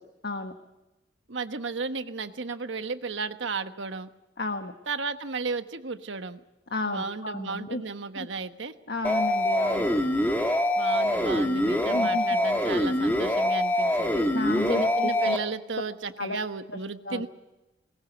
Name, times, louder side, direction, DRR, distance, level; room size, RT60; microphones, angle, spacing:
voice 1, 0.2-0.5 4.4-4.7 6.7-7.8 8.9-9.9 11.9-12.4 14.3-14.9 15.2-15.4 16.2-16.4 16.7-16.8 17.0-17.3, left 3 dB, 60° left, 6 dB, 1.2 m, -32 dB
voice 2, 1.3-4.1 4.9-6.4 6.8-8.7 10.8-14.3 14.7-17.3, right 4 dB, 90° right, 9 dB, 1.2 m, -34 dB
sound 1, 9.0-15.4, left 1 dB, 10° left, 1.6 m, -24 dB
20.0 x 19.5 x 8.1 m, 0.99 s
head